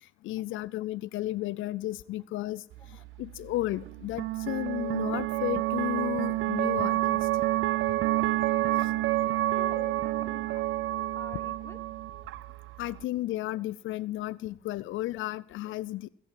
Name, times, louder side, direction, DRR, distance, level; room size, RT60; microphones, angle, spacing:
voice 1, 0.0-7.3 8.8-8.9 12.8-16.1, left 15 dB, 80° left, 18 dB, 0.4 m, -34 dB
sound 1, 2.7-13.0, right 16 dB, 80° right, 0.5 m, -29 dB
voice 2, 9.6-11.8, left 2 dB, 15° left, 6 dB, 1.8 m, -48 dB
17.5 x 7.8 x 6.3 m, 0.72 s
cardioid pair, 90°, 20 cm